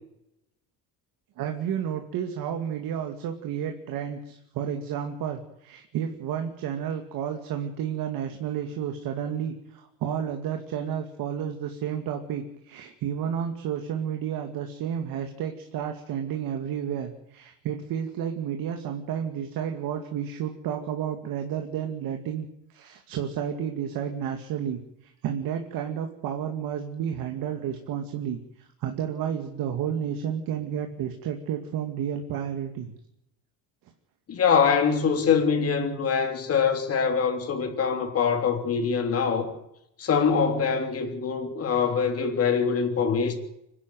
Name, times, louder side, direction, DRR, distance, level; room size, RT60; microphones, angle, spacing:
voice 1, 1.4-32.9, right 8 dB, 65° right, 2.4 m, -31 dB
voice 2, 34.3-39.5 40.0-43.3, left 6 dB, 40° left, 3.3 m, -24 dB
25.5 x 11.5 x 9.4 m
cardioid pair, 150°, 38 cm